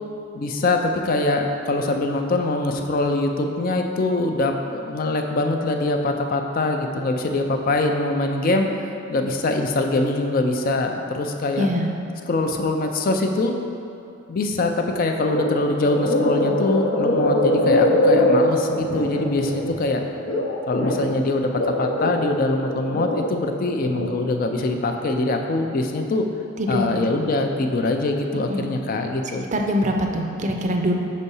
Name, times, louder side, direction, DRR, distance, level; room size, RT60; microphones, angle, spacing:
voice 1, 0.3-8.7 9.1-11.7 12.3-13.5 14.3-20.0 20.7-26.2 26.7-29.5, left 2 dB, 45° left, 4 dB, 0.4 m, -23 dB
voice 2, 11.6-11.9 26.6-26.9 28.5-28.7 29.5-30.9, equal, 35° right, 2 dB, 0.5 m, -23 dB
sound 1, 15.2-15.5 15.8-21.1 21.5-23.3 23.7-24.1, left 1 dB, 75° left, 0.8 m, -22 dB
5.4 x 4.1 x 5.4 m, 2.6 s
head